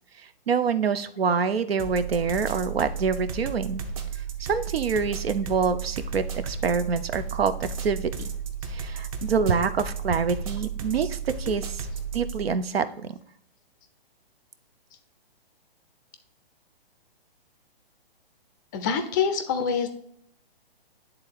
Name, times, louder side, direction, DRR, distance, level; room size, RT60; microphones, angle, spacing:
voice 1, 0.5-3.8 4.5-8.3 8.7-11.9 12.1-13.2, right 5 dB, 80° right, 12 dB, 0.8 m, -26 dB
sound 1, 1.8-12.5, right 6 dB, 35° right, 1.0 m, -34 dB
voice 2, 18.7-19.9, left 6 dB, 20° left, 8 dB, 0.4 m, -25 dB
9.6 x 3.8 x 4.7 m, 0.67 s
hypercardioid pair, 145°, 30 cm